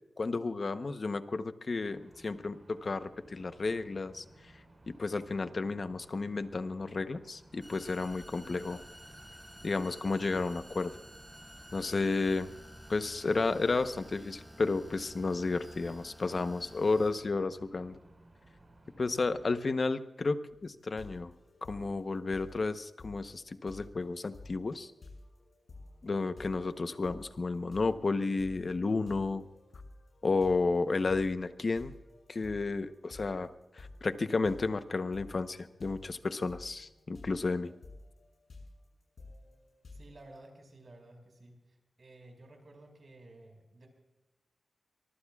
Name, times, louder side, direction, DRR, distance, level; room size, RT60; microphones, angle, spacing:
voice 1, 0.2-4.2 4.9-8.8 9.6-10.9 11.7-12.5 12.9-18.0 19.0-21.3 21.6-24.9 26.0-29.4 30.2-31.9 32.3-37.7, left 3 dB, 45° left, 10 dB, 0.9 m, -32 dB
sound 1, 1.8-19.4, right 1 dB, 35° right, 4.8 m, -59 dB
sound 2, 7.6-17.2, equal, 5° right, 4.0 m, -52 dB
sound 3, 20.5-40.4, left 2 dB, 65° left, 7.5 m, -52 dB
voice 2, 39.9-43.9, right 2 dB, 50° right, 3 dB, 5.3 m, -54 dB
24.0 x 23.0 x 2.4 m, 1.0 s
wide cardioid pair, 135°, 0 cm